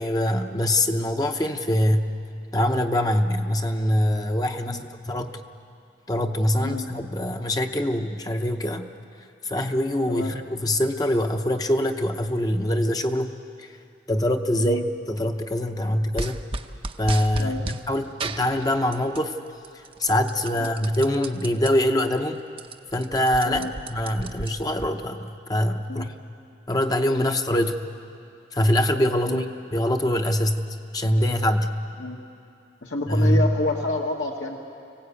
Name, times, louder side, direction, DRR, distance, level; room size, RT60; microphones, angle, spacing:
voice 1, 0.0-2.0 2.5-5.4 6.1-8.9 9.4-13.3 13.6-13.7 14.1-14.8 15.1-16.4 17.0-19.4 20.0-22.4 22.9-26.1 26.7-27.8 28.5-30.6 30.9-31.8 33.1-33.5, left 1 dB, 20° left, 5 dB, 0.8 m, -24 dB
sound 1, 16.2-17.8 18.2-19.3 19.6-21.7 22.1-22.2 22.5-24.9, right 3 dB, 30° right, 0.7 m, -34 dB
voice 2, 32.8-34.6, left 2 dB, 90° left, 0 dB, 1.6 m, -28 dB
25.5 x 17.0 x 8.4 m, 2.6 s
head